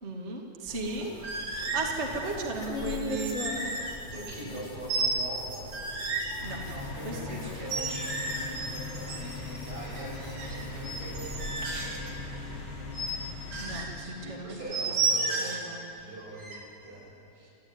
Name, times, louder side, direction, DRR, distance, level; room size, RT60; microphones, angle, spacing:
voice 1, 0.0-1.1 1.5-3.9 4.4-4.5 6.4-6.6 7.0-7.4 13.6-14.9 15.2-15.8, right 3 dB, 25° right, 0 dB, 1.5 m, -36 dB
sound 1, 0.7-11.6, left 2 dB, 20° left, 2.4 m, -41 dB
sound 2, 1.2-2.0 2.8-4.6 4.9-6.3 7.6-9.7 10.1-12.1 12.9-13.1 13.5-13.9 14.7-15.7 16.4-16.6, right 3 dB, 85° right, 5.5 m, -32 dB
voice 2, 4.0-5.7 6.7-13.0 13.3-13.4 13.9-15.5 16.0-17.5, right 1 dB, 60° right, -4 dB, 8.7 m, -42 dB
sound 3, 6.4-13.9, left 3 dB, 60° left, 7.7 m, -40 dB
26.0 x 15.5 x 9.6 m, 2.8 s
omnidirectional pair, 4.6 m